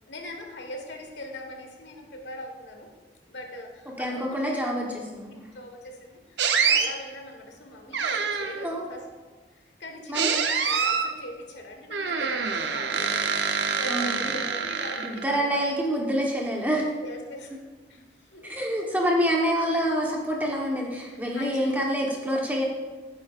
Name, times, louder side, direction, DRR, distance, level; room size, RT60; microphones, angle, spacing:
voice 1, 0.1-2.9 3.3-4.6 5.3-9.0 9.5-15.6 17.0-17.6 17.9-19.0 21.0-21.8, left 1 dB, 90° left, 2 dB, 1.6 m, -41 dB
voice 2, 4.0-5.4 8.6-8.9 10.1-10.3 13.9-14.4 15.0-16.9 18.4-22.6, equal, 10° right, -1 dB, 1.2 m, -27 dB
sound 1, 6.4-6.9 7.9-8.7 10.1-11.1 11.9-15.4, right 6 dB, 90° right, 0.8 m, -26 dB
11.0 x 9.0 x 2.5 m, 1.4 s
head